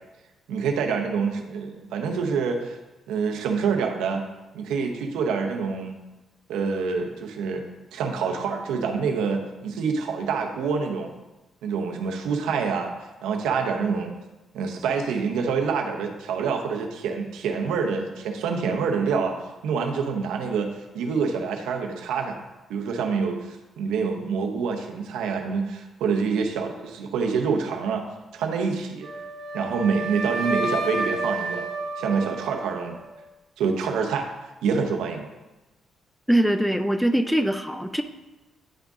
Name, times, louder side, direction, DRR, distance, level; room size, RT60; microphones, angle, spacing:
voice 1, 0.5-2.8 3.1-4.3 4.5-6.0 6.5-7.6 7.9-11.1 11.6-14.1 14.5-19.4 19.6-22.4 22.7-28.1 28.3-29.1 29.5-31.6 32.0-33.0 33.6-34.3 34.6-35.3, right 5 dB, 90° right, 3 dB, 0.7 m, -26 dB
Wind instrument woodwind instrument, 29.0-33.1, right 2 dB, 70° right, 1.3 m, -30 dB
voice 2, 36.3-38.0, right 1 dB, ahead, 9 dB, 0.4 m, -22 dB
9.3 x 3.6 x 3.6 m, 1.1 s
cardioid pair, 90°, 0 cm